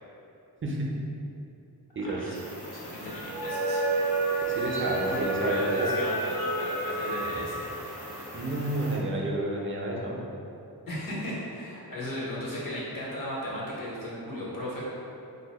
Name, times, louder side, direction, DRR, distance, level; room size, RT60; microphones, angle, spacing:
voice 1, 2.0-2.4 2.7-3.8 5.1-7.6 10.9-14.8, equal, 60° left, -7 dB, 0.9 m, -36 dB
sound 1, 2.3-9.0, right 2 dB, 75° left, 1.2 m, -31 dB
voice 2, 4.4-5.9 8.3-10.2, right 2 dB, 35° right, -2 dB, 0.4 m, -30 dB
2.7 x 2.1 x 4.0 m, 2.8 s
wide cardioid pair, 120°, 39 cm